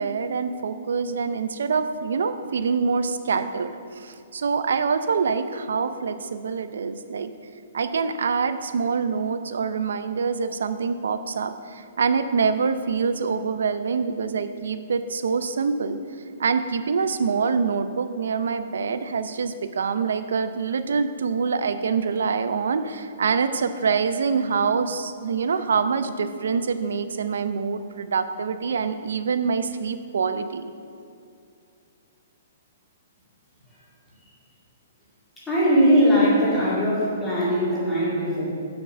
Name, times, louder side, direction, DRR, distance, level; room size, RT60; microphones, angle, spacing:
voice 1, 0.0-7.3 7.7-16.0 16.4-30.7, right 5 dB, 85° right, 10 dB, 0.6 m, -25 dB
voice 2, 35.5-38.5, equal, 5° left, -9 dB, 2.0 m, -20 dB
7.2 x 6.0 x 6.2 m, 2.5 s
hypercardioid pair, 175°, 0 cm